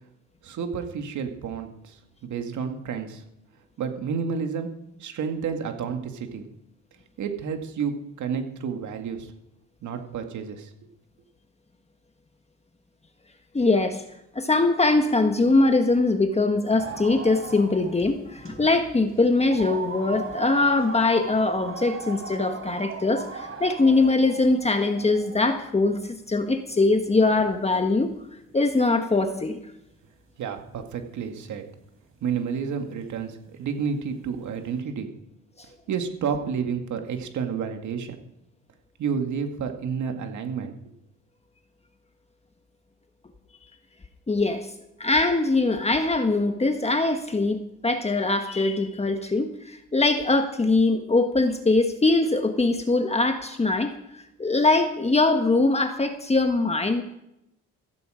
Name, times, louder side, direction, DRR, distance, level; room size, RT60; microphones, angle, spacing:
voice 1, 0.4-3.2 3.8-4.7 5.0-6.4 7.2-9.3 9.8-10.7 30.4-31.7 32.2-35.1 35.6-38.2 39.0-40.7, right 6 dB, 75° right, 5 dB, 2.2 m, -30 dB
voice 2, 13.5-14.0 14.3-28.1 28.5-29.6 44.3-44.7 45.0-57.0, left 3 dB, 20° left, 6 dB, 1.4 m, -22 dB
sound 1, 16.8-28.6 29.5-29.6 29.9-30.0 30.4-30.5 31.1-31.3 31.6-31.7 31.9-32.5 32.8-34.8, right 4 dB, 45° right, 3.9 m, -39 dB
15.5 x 15.0 x 5.1 m, 0.83 s
cardioid pair, 90°, 30 cm